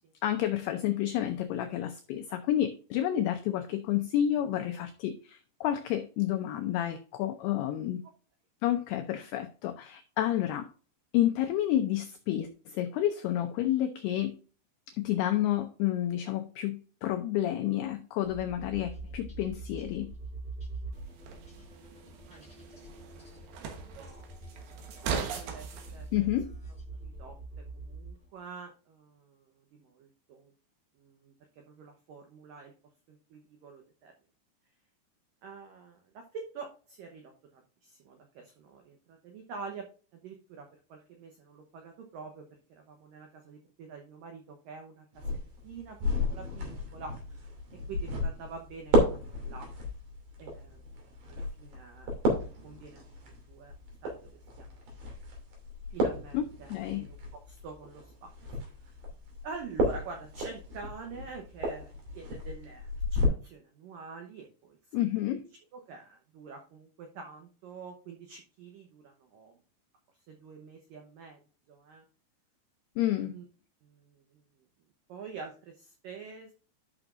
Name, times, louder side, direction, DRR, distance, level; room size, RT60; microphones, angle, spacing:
voice 1, 0.2-8.0 8.6-10.7 11.1-14.4 15.0-20.1 26.1-26.5 56.3-57.1 64.9-65.5 73.0-73.3, left 12 dB, 90° left, 6 dB, 2.2 m, -30 dB
sound 1, 18.2-28.4, right 2 dB, ahead, 3.8 m, -44 dB
sound 2, 20.9-25.9, right 6 dB, 70° right, 3.2 m, -39 dB
voice 2, 24.0-24.3 24.9-25.7 25.9-26.1 27.0-30.5 31.0-32.7 33.1-34.1 35.4-39.9 40.1-45.1 45.3-47.4 47.9-49.7 50.4-50.8 51.3-52.2 52.6-53.0 53.5-53.7 54.0-54.8 55.9-58.3 58.8-59.0 59.4-65.0 65.3-65.4 65.7-69.6 70.3-71.4 71.7-72.0 73.3-73.5 73.8-74.4 75.1-76.5, right 5 dB, 85° right, 3 dB, 1.9 m, -47 dB
sound 3, 45.1-63.3, left 1 dB, 55° right, 4.2 m, -33 dB
12.0 x 6.1 x 2.5 m, 0.38 s
omnidirectional pair, 5.5 m